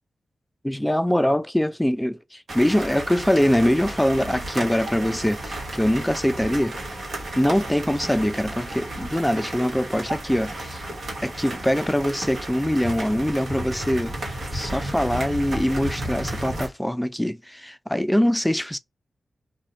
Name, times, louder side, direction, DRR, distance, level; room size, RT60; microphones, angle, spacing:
voice 1, 0.6-6.9 7.4-10.8 11.2-18.8, equal, 5° left, 0.3 m, -23 dB
sound 1, 2.5-16.7, right 1 dB, 65° right, 1.1 m, -33 dB
2.6 x 2.1 x 2.9 m
cardioid pair, 50°, 0 cm